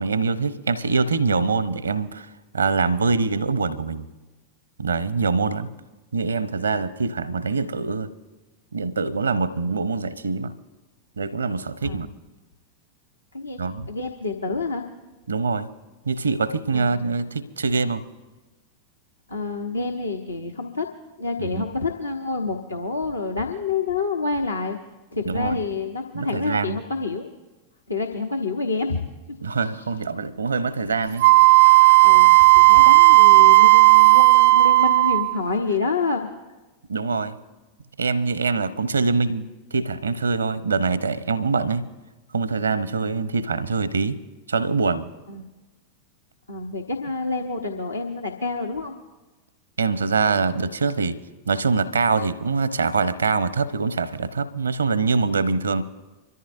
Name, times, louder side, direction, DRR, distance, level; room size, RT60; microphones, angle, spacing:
voice 1, 0.0-2.3 2.5-4.1 4.8-5.7 6.1-8.1 8.7-10.5 11.2-12.1 13.6-13.9 15.3-15.7 16.1-18.0 21.4-21.7 25.3-25.6 26.1-26.8 29.4-31.2 36.9-37.3 38.0-41.8 42.3-44.2 44.5-45.1 49.8-51.2 51.5-55.8, right 4 dB, 75° right, 15 dB, 0.8 m, -24 dB
voice 2, 13.9-14.9 16.7-17.0 19.3-20.9 21.2-24.8 25.1-27.3 27.9-29.0 29.6-29.9 32.0-36.3 45.3-45.5 46.5-48.9, left 3 dB, 80° left, 1 dB, 1.0 m, -28 dB
Wind instrument woodwind instrument, 31.2-35.3, right 22 dB, 55° right, 0.3 m, -12 dB
25.5 x 14.0 x 2.6 m, 1.2 s
figure-of-eight pair, 90°, 0 cm